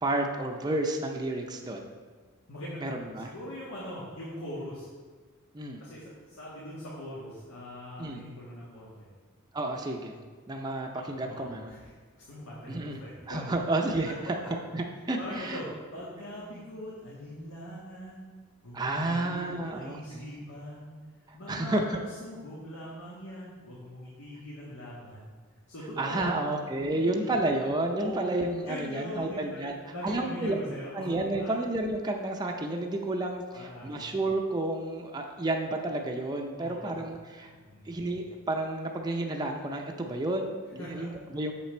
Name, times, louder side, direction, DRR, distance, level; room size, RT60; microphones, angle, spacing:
voice 1, 0.0-1.9 2.8-3.3 5.5-5.8 8.0-8.2 9.5-10.2 10.5-11.7 12.7-13.0 13.3-14.1 14.7-15.6 18.7-20.3 21.5-22.0 26.0-29.8 30.0-30.5 30.9-37.5 37.9-41.5, right 2 dB, 20° right, 2 dB, 0.5 m, -31 dB
voice 2, 2.5-4.9 5.8-9.1 10.9-11.9 12.2-13.4 14.1-14.5 15.1-18.3 18.6-20.9 21.3-25.3 25.7-26.4 26.9-27.4 27.9-31.5 33.5-34.1 36.6-37.0 37.4-38.0 40.8-41.1, equal, 90° left, -7 dB, 1.7 m, -41 dB
6.7 x 5.8 x 4.3 m, 1.5 s
head